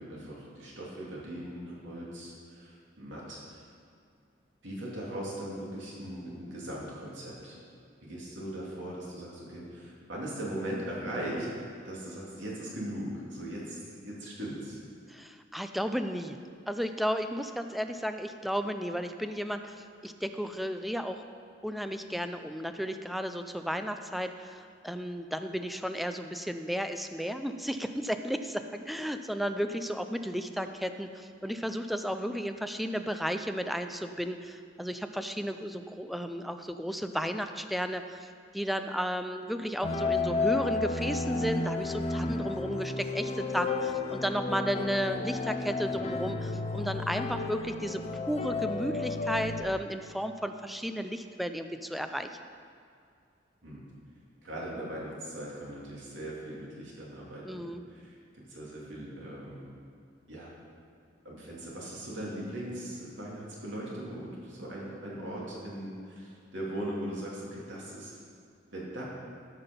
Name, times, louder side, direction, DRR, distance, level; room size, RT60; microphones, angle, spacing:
voice 1, 0.0-3.6 4.6-7.6 8.0-11.5 11.8-14.8 53.6-53.8 54.4-59.6 60.3-60.5 61.2-68.1 68.7-69.0, right 1 dB, 85° right, -5 dB, 2.7 m, -39 dB
voice 2, 15.1-16.4 16.7-21.2 21.6-52.3 57.4-57.8, equal, ahead, 8 dB, 0.4 m, -33 dB
sound 1, 39.8-49.6, left 3 dB, 35° left, 0.7 m, -32 dB
13.0 x 5.9 x 5.3 m, 2.2 s
head